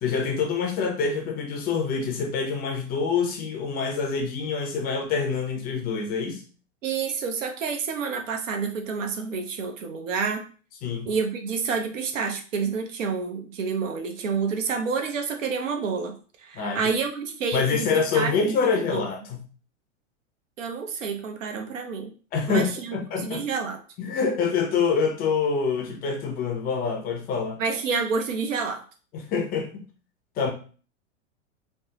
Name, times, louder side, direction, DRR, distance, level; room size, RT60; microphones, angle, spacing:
voice 1, 0.0-6.4 10.8-11.1 16.5-16.9 17.5-19.4 22.3-23.4 24.0-27.6 29.1-29.8 30.4-30.5, left 5 dB, 25° left, 3 dB, 0.5 m, -26 dB
voice 2, 6.8-10.4 11.1-16.1 16.4-18.6 18.9-19.1 20.6-22.1 22.5-23.8 27.6-28.8, right 5 dB, 75° right, 4 dB, 0.7 m, -29 dB
3.3 x 2.0 x 2.8 m, 0.39 s
hypercardioid pair, 110°, 38 cm